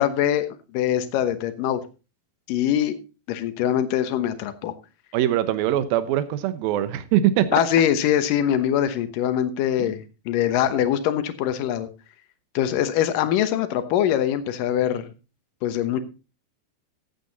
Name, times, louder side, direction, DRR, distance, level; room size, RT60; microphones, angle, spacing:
voice 1, 0.0-1.8 2.5-2.9 3.3-4.7 7.5-11.9 12.5-15.0 15.6-16.0, left 10 dB, 70° left, 2.5 m, -23 dB
voice 2, 5.1-7.6 9.8-9.9, right 12 dB, 75° right, 2.7 m, -22 dB
14.5 x 8.5 x 4.0 m
omnidirectional pair, 4.4 m